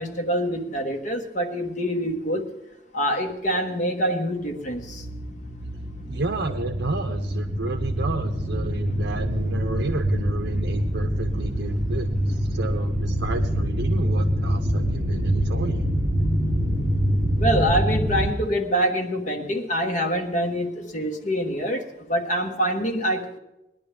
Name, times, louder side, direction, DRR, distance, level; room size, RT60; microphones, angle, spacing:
voice 1, 0.0-2.5 2.9-5.0 17.4-23.4, equal, 40° left, 2 dB, 1.4 m, -25 dB
sound 1, 4.4-18.3, equal, 20° right, 3.8 m, -25 dB
voice 2, 6.1-15.8, right 3 dB, 70° right, 7 dB, 0.7 m, -32 dB
20.5 x 10.5 x 3.4 m, 0.94 s
head